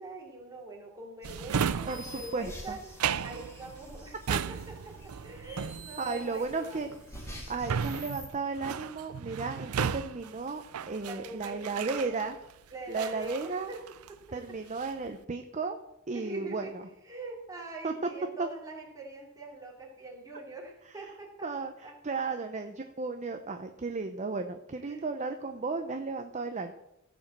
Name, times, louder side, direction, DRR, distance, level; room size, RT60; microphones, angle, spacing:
voice 1, 0.0-2.8 3.2-7.0 11.0-12.2 12.7-13.8 14.1-14.2 16.1-16.7 17.0-21.5 21.8-22.0 24.8-25.1, right 2 dB, 15° right, -2 dB, 3.0 m, -43 dB
sound 1, 1.2-8.3, equal, 15° left, 2.7 m, -47 dB
Drawer open or close, 1.2-12.5 12.9-14.2 14.6-15.1, right 7 dB, 85° right, 0.5 m, -35 dB
voice 2, 1.9-2.8 4.3-4.4 6.0-6.9 7.5-12.4 12.9-13.7 14.3-15.8 16.1-16.8 17.8-17.9 18.4-18.5 21.0-21.1 21.4-26.7, right 4 dB, 35° right, 7 dB, 0.7 m, -34 dB
15.5 x 5.3 x 7.3 m, 0.87 s
head